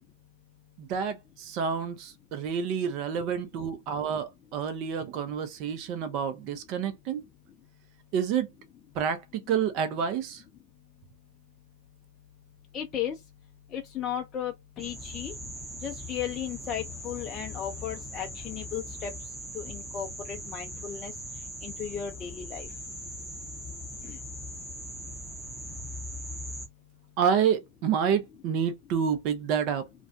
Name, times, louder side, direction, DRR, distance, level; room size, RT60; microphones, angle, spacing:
voice 1, 0.8-7.2 8.1-8.5 8.9-10.4 27.2-29.8, right 7 dB, 45° right, 0.6 m, -28 dB
voice 2, 12.7-13.2 13.7-15.3 15.8-19.1 19.5-21.1 21.6-22.7 24.0-24.2, left 9 dB, 30° left, 0.5 m, -35 dB
sound 1, 14.8-26.7, left 1 dB, ahead, 0.7 m, -40 dB
2.4 x 2.2 x 2.4 m
hypercardioid pair, 105°, 0 cm